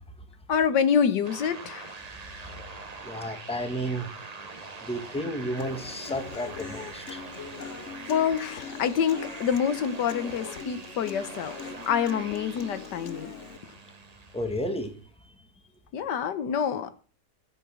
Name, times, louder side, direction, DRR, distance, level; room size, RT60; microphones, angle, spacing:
voice 1, 0.5-2.0 8.1-13.3 13.6-13.7 15.9-17.0, left 7 dB, 85° left, 1.6 m, -27 dB
sound 1, 1.2-14.9, right 4 dB, 30° right, 1.0 m, -43 dB
voice 2, 3.0-4.1 4.8-7.3 14.3-15.0 15.2-15.3, equal, 5° left, 1.5 m, -32 dB
Human voice / Acoustic guitar, 5.6-13.6, left 6 dB, 50° left, 1.0 m, -41 dB
13.5 x 8.2 x 6.3 m
omnidirectional pair, 1.8 m